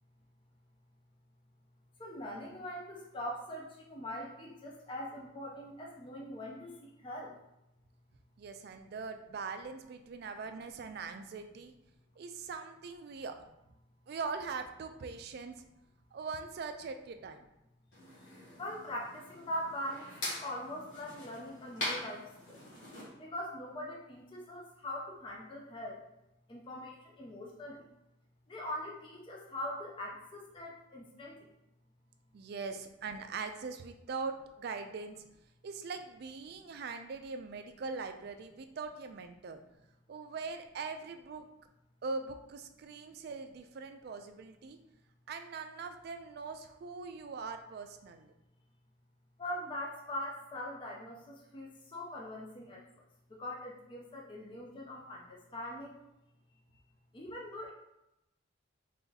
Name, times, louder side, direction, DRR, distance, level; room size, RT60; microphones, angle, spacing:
voice 1, 2.0-7.3 18.6-22.6 23.2-26.0 26.5-27.8 28.5-31.5 49.4-53.0 53.4-56.0 56.7-56.8 57.1-57.7, left 1 dB, 25° left, -2 dB, 0.4 m, -42 dB
voice 2, 8.4-11.7 12.2-13.4 14.1-15.7 16.1-17.5 32.3-35.2 35.6-39.6 40.1-41.5 42.0-44.8 45.3-48.3, right 4 dB, 50° right, 7 dB, 0.3 m, -41 dB
sound 1, 17.9-23.1, left 1 dB, 55° left, 1.5 m, -43 dB
3.3 x 2.7 x 3.8 m, 0.89 s
head